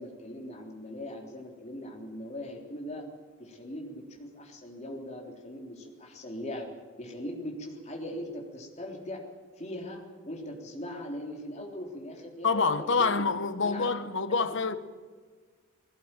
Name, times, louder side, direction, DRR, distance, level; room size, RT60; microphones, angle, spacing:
voice 1, 0.0-3.1 3.4-6.7 7.0-9.2 9.6-13.2 13.6-13.9 14.4-14.5, left 1 dB, 35° left, 3.5 m, -40 dB
voice 2, 12.4-14.7, left 4 dB, 60° left, 1.2 m, -27 dB
19.5 x 17.0 x 9.0 m
head